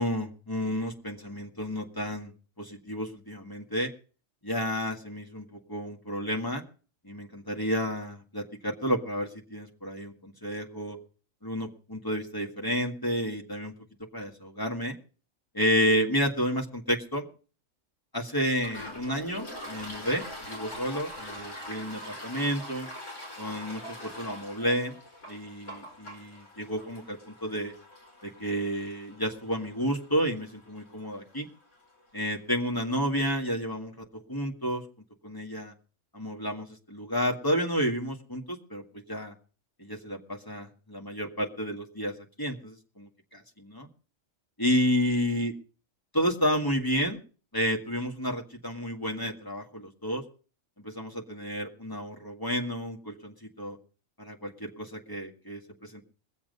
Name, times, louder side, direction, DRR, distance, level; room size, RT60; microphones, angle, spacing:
voice 1, 0.0-3.9 4.4-6.6 7.0-11.0 11.4-13.7 14.1-15.0 15.5-17.3 18.1-22.9 23.4-25.0 25.3-27.7 28.2-31.5 32.1-34.8 35.2-35.7 36.1-39.3 39.8-43.9 44.6-45.5 46.1-47.2 47.5-50.2 50.8-53.8 54.2-56.0, equal, 15° left, 1 dB, 1.8 m, -31 dB
Toilet flush, 18.5-31.9, equal, 75° left, 5.7 m, -44 dB
21.5 x 7.5 x 5.4 m, 0.40 s
omnidirectional pair, 1.3 m